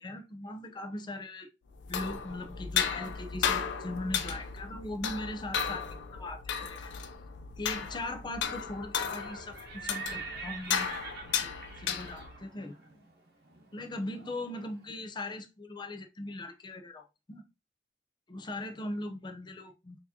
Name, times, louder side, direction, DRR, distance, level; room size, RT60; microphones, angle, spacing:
voice 1, 0.0-1.5 1.9-6.9 7.6-10.9 11.3-11.5 11.8-12.7 13.7-17.4 18.3-20.0, left 1 dB, 25° left, 0.5 m, -40 dB
sound 1, 1.7-12.4, left 7 dB, 75° left, 0.5 m, -35 dB
Livestock farm animals working animals, 8.9-14.7, right 5 dB, 60° right, 0.9 m, -45 dB
4.4 x 2.8 x 2.7 m
head